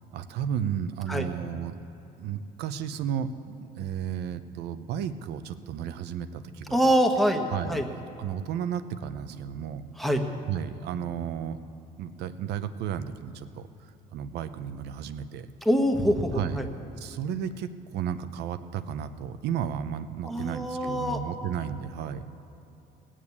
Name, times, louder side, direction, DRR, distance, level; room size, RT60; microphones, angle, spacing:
voice 1, 0.1-1.8 2.2-6.9 7.5-9.8 10.5-11.6 12.0-13.7 14.1-15.5 16.3-16.6 17.0-22.2, right 8 dB, 80° right, 12 dB, 0.7 m, -33 dB
voice 2, 6.7-7.9 10.0-10.2 15.6-16.7 20.2-21.2, equal, ahead, 3 dB, 1.2 m, -25 dB
18.5 x 7.5 x 8.4 m, 2.9 s
cardioid pair, 110°, 17 cm